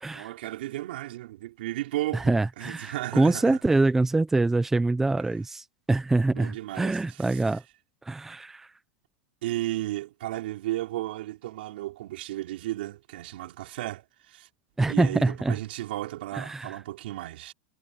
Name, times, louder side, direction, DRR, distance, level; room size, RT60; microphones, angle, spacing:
voice 1, 0.1-3.6 5.2-5.3 6.3-7.6 9.4-14.5 14.9-17.5, right 16 dB, 75° right, 5.4 m, -34 dB
voice 2, 2.3-7.6 8.1-8.7 14.8-15.5 16.4-16.7, right 2 dB, 5° right, 0.9 m, -24 dB
supercardioid pair, 155°, 6 cm